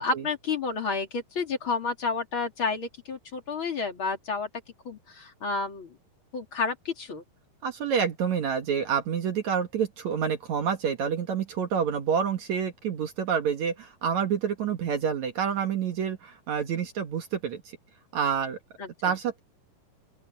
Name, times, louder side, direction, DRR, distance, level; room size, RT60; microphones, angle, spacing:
voice 1, 0.0-4.5 4.8-6.0 6.3-7.2 18.8-19.1, left 4 dB, 35° left, 3.2 m, -30 dB
voice 2, 7.6-17.6 18.1-18.6 19.0-19.4, right 7 dB, 55° right, 2.3 m, -28 dB
open air
omnidirectional pair, 4.5 m